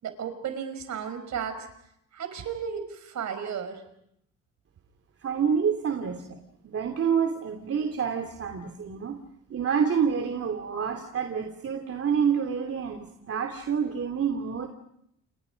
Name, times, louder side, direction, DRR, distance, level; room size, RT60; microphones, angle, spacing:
voice 1, 0.0-1.7 2.1-3.8, right 7 dB, 65° right, 8 dB, 5.6 m, -34 dB
voice 2, 5.2-6.4 6.6-9.2 9.5-14.7, right 7 dB, 50° right, 4 dB, 2.9 m, -28 dB
30.0 x 29.5 x 5.3 m, 0.75 s
cardioid pair, 90°, 30 cm